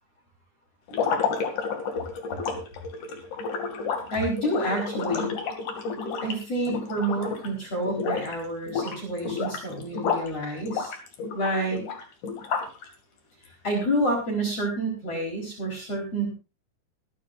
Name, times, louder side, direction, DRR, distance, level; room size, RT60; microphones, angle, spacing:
sound 1, 0.9-7.6 7.9-8.4 8.7-10.3 10.7-12.9, left 5 dB, 50° left, 3.5 m, -30 dB
voice 1, 4.1-5.3 6.2-10.9 11.3-11.8 13.5-16.3, right 1 dB, 35° left, -2 dB, 5.1 m, -28 dB
24.5 x 11.0 x 2.6 m, 0.28 s
omnidirectional pair, 4.8 m